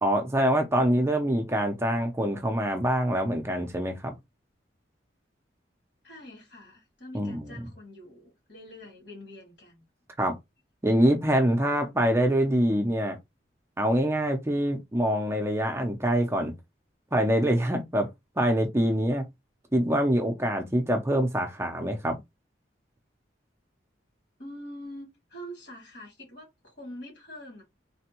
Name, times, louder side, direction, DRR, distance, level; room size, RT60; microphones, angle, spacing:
voice 1, 0.0-4.1 7.1-7.6 10.2-10.4 10.8-13.2 13.8-16.5 17.1-18.1 18.4-19.2 19.7-22.2, right 1 dB, 15° right, 0.5 m, -25 dB
voice 2, 6.0-9.8 24.4-27.6, equal, 65° left, 1.8 m, -44 dB
3.3 x 2.2 x 2.9 m
head